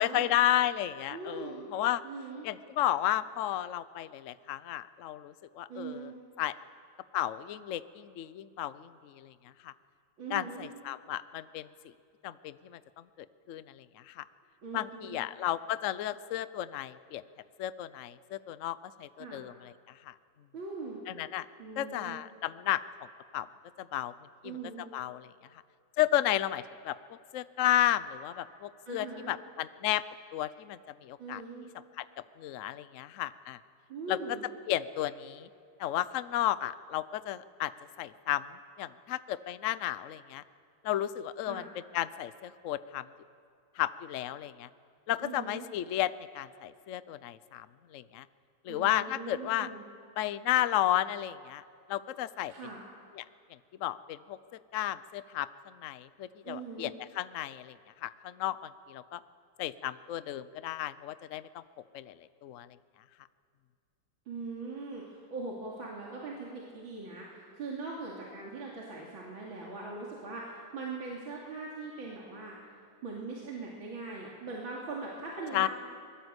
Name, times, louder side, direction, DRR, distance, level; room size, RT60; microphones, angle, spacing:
voice 1, 0.0-2.0 2.4-6.1 6.4-6.5 7.1-9.3 9.6-9.7 10.3-11.7 12.2-14.2 14.7-17.2 17.6-20.1 21.1-21.5 21.8-22.8 23.3-23.5 23.8-24.1 24.4-24.6 24.9-25.3 26.0-27.0 27.3-30.0 30.3-31.4 32.0-33.6 34.1-34.2 34.7-35.5 35.8-37.7 38.0-38.5 38.8-40.4 40.8-41.6 41.9-43.1 43.8-44.7 45.1-47.7 47.9-48.3 48.6-49.7 50.2-51.6 51.9-52.5 53.1-53.2 53.8-59.2 59.6-61.6 61.9-62.7 75.5-75.7, left 13 dB, 75° left, 15 dB, 0.7 m, -33 dB
voice 2, 1.1-1.6 2.0-2.5 5.7-6.2 10.2-10.7 14.6-15.2 19.2-19.4 20.5-21.0 21.6-22.2 24.4-24.9 28.9-29.3 31.2-31.7 33.9-34.4 41.5-41.7 45.2-45.7 48.7-49.8 52.5-52.8 56.4-56.9 64.3-72.6 73.0-75.7, right 3 dB, 70° right, -3 dB, 3.4 m, -41 dB
23.5 x 21.5 x 8.1 m, 2.3 s
omnidirectional pair, 2.3 m